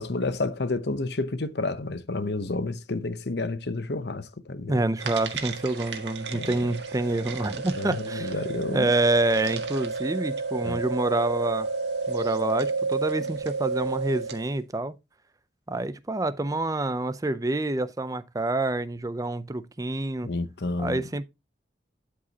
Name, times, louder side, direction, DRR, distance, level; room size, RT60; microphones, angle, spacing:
voice 1, 0.0-4.8 6.3-6.6 7.7-8.9 10.6-10.8 20.2-21.0, left 2 dB, 60° left, 0.9 m, -30 dB
voice 2, 4.7-8.3 8.7-11.7 12.1-14.9 15.7-20.3 20.8-21.2, right 2 dB, 20° right, 0.5 m, -27 dB
sound 1, 5.0-14.5, right 4 dB, 65° right, 1.8 m, -31 dB
12.0 x 5.1 x 2.8 m
head